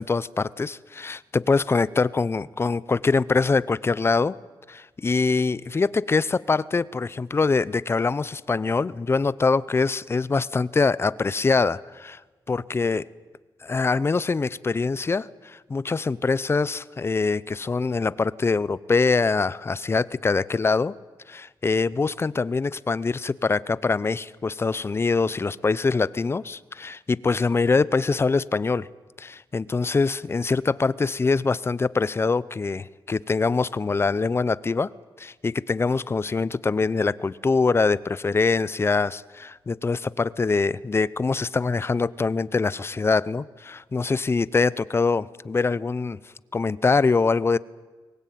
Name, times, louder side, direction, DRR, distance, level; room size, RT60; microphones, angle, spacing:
voice 1, 0.0-4.4 4.7-12.2 12.5-13.1 13.6-20.9 21.3-28.9 29.2-34.9 35.2-46.2 46.5-47.6, left 4 dB, 30° left, 19 dB, 0.7 m, -24 dB
23.0 x 19.5 x 9.3 m, 1.3 s
cardioid pair, 95°, 8 cm